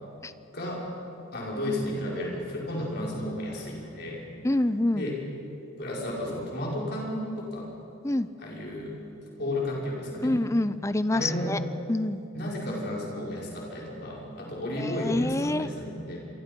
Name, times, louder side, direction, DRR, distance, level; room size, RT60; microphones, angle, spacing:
voice 1, 0.5-0.9 1.3-4.2 4.9-5.2 5.8-7.7 8.4-9.0 9.4-10.4 11.1-11.6 12.3-16.2, left 1 dB, 50° left, -3 dB, 5.4 m, -33 dB
voice 2, 4.4-5.1 8.0-8.3 10.2-11.6 11.9-12.2 14.8-15.7, left 1 dB, 15° left, 14 dB, 0.5 m, -26 dB
27.5 x 23.5 x 5.4 m, 2.7 s
head